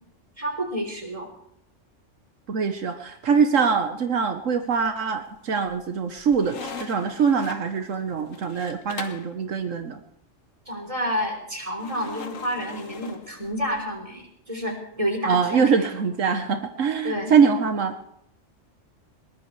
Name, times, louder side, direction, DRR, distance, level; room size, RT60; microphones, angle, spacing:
voice 1, 0.4-1.3 10.7-15.9 17.0-17.3, equal, 25° right, 3 dB, 3.6 m, -29 dB
voice 2, 2.5-10.0 15.3-18.0, right 6 dB, 80° right, 6 dB, 1.5 m, -23 dB
sound 1, 4.7-5.2 5.7-9.3 11.8-13.8, left 4 dB, 85° left, 1.6 m, -41 dB
21.0 x 19.0 x 3.3 m, 0.73 s
omnidirectional pair, 1.3 m